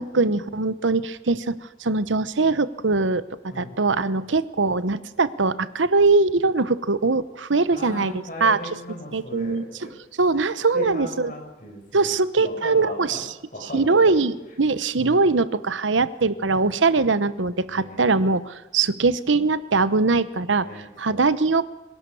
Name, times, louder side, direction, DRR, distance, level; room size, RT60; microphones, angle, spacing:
voice 1, 0.0-8.6 9.1-9.9 10.2-11.3 11.9-13.3 13.7-21.6, right 3 dB, 85° right, 15 dB, 1.0 m, -22 dB
voice 2, 7.7-9.9 10.7-12.1 12.4-13.2 13.5-14.2 15.0-15.4 16.3-16.5 17.7-18.0 20.6-21.3, left 1 dB, 45° left, 1 dB, 6.6 m, -37 dB
25.5 x 17.5 x 7.0 m, 1.0 s
head